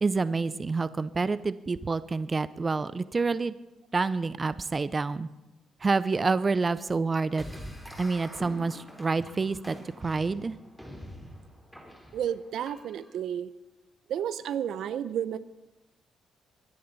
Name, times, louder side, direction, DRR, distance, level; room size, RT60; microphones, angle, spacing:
voice 1, 0.0-3.5 3.9-5.3 5.8-7.4 8.0-10.5, right 4 dB, 30° right, 16 dB, 0.5 m, -28 dB
sound 1, 7.4-13.2, equal, ahead, 3.5 m, -45 dB
voice 2, 12.1-13.5 14.1-15.4, right 9 dB, 75° right, 15 dB, 0.6 m, -31 dB
23.0 x 10.5 x 4.0 m, 0.99 s
cardioid pair, 90°, 0 cm